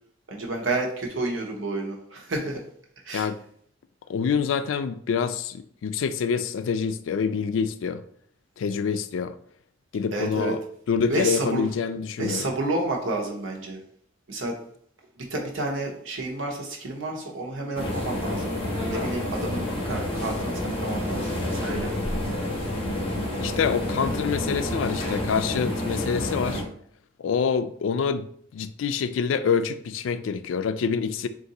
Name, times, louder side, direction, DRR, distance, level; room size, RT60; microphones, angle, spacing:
voice 1, 0.3-2.6 3.0-3.3 10.1-10.5 11.1-11.7 12.2-13.8 14.3-14.6 15.2-18.5 18.9-21.9, right 2 dB, 90° right, 1.0 m, -30 dB
voice 2, 4.1-8.0 8.6-9.3 9.9-10.6 10.9-12.5 23.4-26.6 27.2-28.3 28.5-31.3, left 6 dB, 80° left, 0.3 m, -26 dB
sound 1, 17.8-26.6, left 1 dB, 30° left, 1.1 m, -29 dB
3.7 x 2.6 x 4.0 m
head